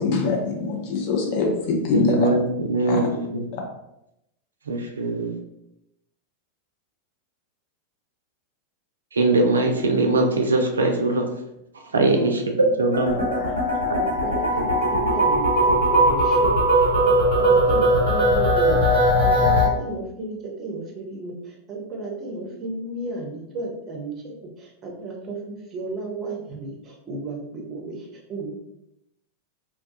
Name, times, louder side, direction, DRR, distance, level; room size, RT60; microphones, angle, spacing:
voice 1, 0.0-2.3 2.9-3.0 3.5-3.6, left 4 dB, 45° left, 0 dB, 0.6 m, -23 dB
voice 2, 1.9-3.4 4.7-5.3 9.1-11.2 11.9-12.5 12.8-13.1, right 2 dB, 70° right, 3 dB, 0.4 m, -21 dB
voice 3, 12.0-13.6 14.0-18.8 19.2-28.5, right 2 dB, 30° right, -1 dB, 0.7 m, -34 dB
sound 1, 12.9-19.7, equal, 65° left, 1.2 m, -19 dB
2.2 x 2.2 x 2.7 m, 0.85 s
figure-of-eight pair, 90°, 0 cm